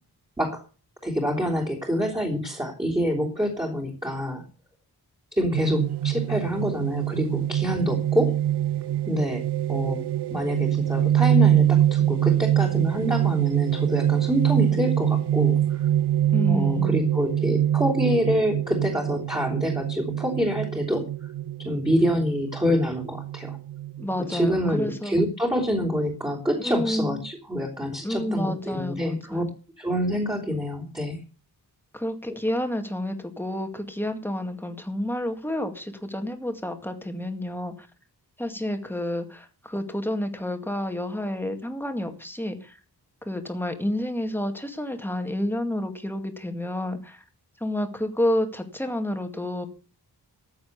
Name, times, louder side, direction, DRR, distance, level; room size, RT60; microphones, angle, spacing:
voice 1, 1.0-4.4 5.3-8.4 9.1-9.4 9.7-10.0 10.3-15.8 16.5-21.1 21.6-23.6 24.3-29.4 29.8-31.2 32.3-32.4, equal, 10° right, -4 dB, 3.3 m, -26 dB
sound 1, 5.5-24.7, right 11 dB, 80° right, 0.6 m, -24 dB
voice 2, 16.3-17.0 24.0-25.2 26.6-27.2 28.0-29.4 31.9-37.9 38.4-42.8 43.2-47.2 47.6-49.7, left 1 dB, 5° left, 6 dB, 2.1 m, -29 dB
14.5 x 8.2 x 6.7 m, 0.36 s
wide cardioid pair, 135°, 40 cm